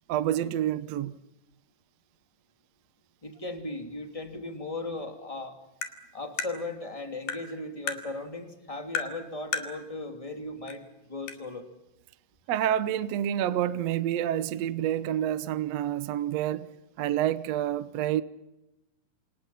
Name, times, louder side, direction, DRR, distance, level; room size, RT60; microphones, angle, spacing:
voice 1, 0.1-1.2 12.5-16.7 17.0-18.2, right 11 dB, 70° right, 1.6 m, -28 dB
voice 2, 3.2-5.6 6.1-11.6, left 2 dB, 10° left, 2.5 m, -37 dB
Tap, 5.8-6.0 6.4-6.5 7.3-7.4 7.9-8.0 9.0-9.1 9.5-9.7 10.7-10.8 11.3-11.4, left 4 dB, 85° left, 4.0 m, -33 dB
28.5 x 27.5 x 5.8 m
omnidirectional pair, 4.1 m